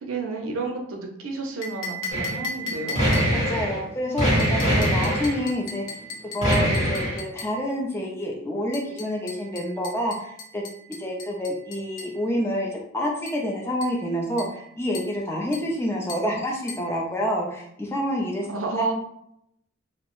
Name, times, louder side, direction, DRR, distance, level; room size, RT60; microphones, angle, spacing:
voice 1, 0.0-3.1 18.5-18.9, right 3 dB, 65° right, 1 dB, 0.5 m, -31 dB
sound 1, 1.6-3.6 4.4-7.6 8.7-12.2 13.3-13.5 13.8-14.1 14.4-14.7 14.9-15.2 15.5-15.8 16.1-16.3 16.7-16.9, left 1 dB, 60° left, 0.5 m, -37 dB
sound 2, 2.1-2.4 2.7-3.8 4.2-5.4 6.4-7.2, equal, 30° left, 0.9 m, -22 dB
voice 2, 3.3-5.8 6.3-10.6 11.0-12.7 12.9-18.5, equal, 10° left, -1 dB, 0.4 m, -28 dB
2.7 x 2.0 x 3.0 m, 0.74 s
head